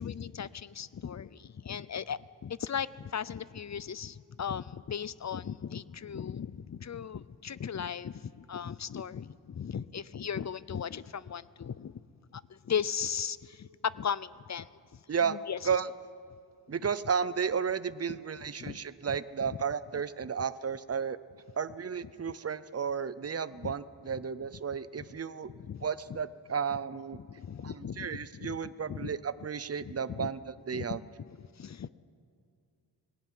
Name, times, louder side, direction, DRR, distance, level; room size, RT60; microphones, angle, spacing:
voice 1, 0.0-12.0 12.3-15.0 15.3-15.6 18.6-18.8 19.1-19.6 23.6-23.7 25.4-26.2 27.3-28.6 28.9-29.2 29.8-30.3 30.7-31.0 31.3-31.9, left 7 dB, 40° left, 18 dB, 0.5 m, -37 dB
voice 2, 16.7-21.2 21.6-25.5 25.8-27.2 27.6-31.0, right 6 dB, 35° right, 16 dB, 0.6 m, -33 dB
19.5 x 15.5 x 9.2 m, 2.4 s
wide cardioid pair, 115°, 43 cm